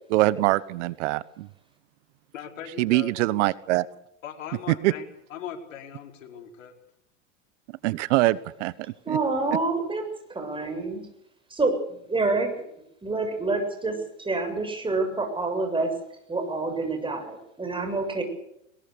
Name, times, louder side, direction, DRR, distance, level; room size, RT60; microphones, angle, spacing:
voice 1, 0.1-1.5 2.8-3.9 4.7-4.9 7.8-8.7 9.1-9.2, right 18 dB, 65° right, 19 dB, 1.1 m, -23 dB
voice 2, 2.3-3.1 4.2-6.7, left 8 dB, 80° left, 4 dB, 4.9 m, -39 dB
voice 3, 9.1-10.0 10.3-11.1 11.5-12.5 13.0-15.9 16.3-18.2, right 3 dB, 15° right, 5 dB, 7.4 m, -27 dB
22.0 x 21.0 x 6.8 m, 0.78 s
hypercardioid pair, 110°, 38 cm